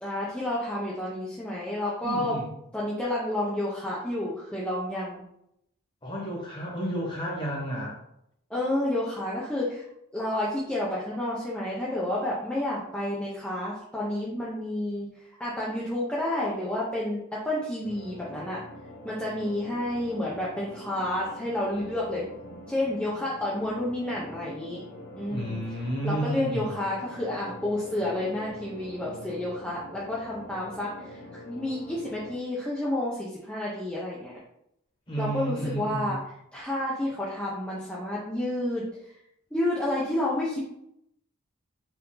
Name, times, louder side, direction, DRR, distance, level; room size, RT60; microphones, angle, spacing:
voice 1, 0.0-2.4 2.7-5.2 8.5-9.9 10.1-15.1 15.4-18.6 19.0-22.2 22.7-24.8 25.2-25.6 26.0-34.4 35.2-36.2 36.5-38.8 39.5-40.6, left 1 dB, 5° left, -6 dB, 0.6 m, -30 dB
voice 2, 2.0-2.5 6.0-8.0 25.3-26.7 35.1-36.2, right 1 dB, 20° left, -3 dB, 1.2 m, -32 dB
sound 1, 17.8-32.4, left 1 dB, 50° left, 0.6 m, -44 dB
4.5 x 2.7 x 3.8 m, 0.77 s
head